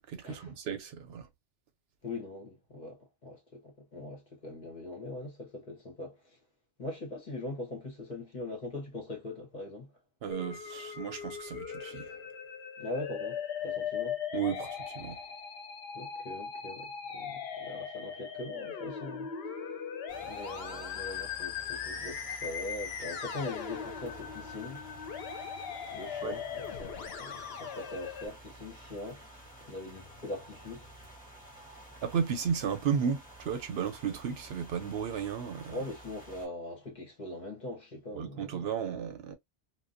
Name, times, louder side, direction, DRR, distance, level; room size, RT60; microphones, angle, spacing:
voice 1, 0.1-1.3 10.2-12.2 14.3-15.2 26.2-26.4 32.0-35.8 38.1-39.4, right 7 dB, 70° right, 0.8 m, -34 dB
voice 2, 2.0-6.4 6.8-9.9 12.8-14.2 15.9-19.3 20.2-24.8 25.9-29.2 29.6-30.9 35.7-38.4, left 2 dB, 45° left, 1.0 m, -41 dB
Musical instrument, 10.3-28.3, left 7 dB, 70° left, 0.8 m, -39 dB
sound 1, 20.1-36.5, right 1 dB, 10° left, 1.0 m, -51 dB
2.4 x 2.1 x 2.5 m
omnidirectional pair, 1.1 m